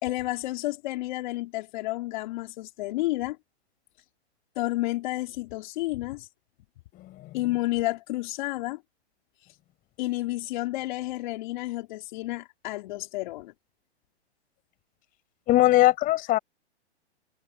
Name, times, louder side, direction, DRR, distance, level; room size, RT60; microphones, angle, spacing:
voice 1, 0.0-3.4 4.5-6.3 7.3-8.8 10.0-13.5, left 18 dB, 45° left, 3.3 m, -31 dB
voice 2, 7.0-7.3 15.5-16.4, left 16 dB, 25° left, 4.7 m, -21 dB
hypercardioid pair, 140°, 34 cm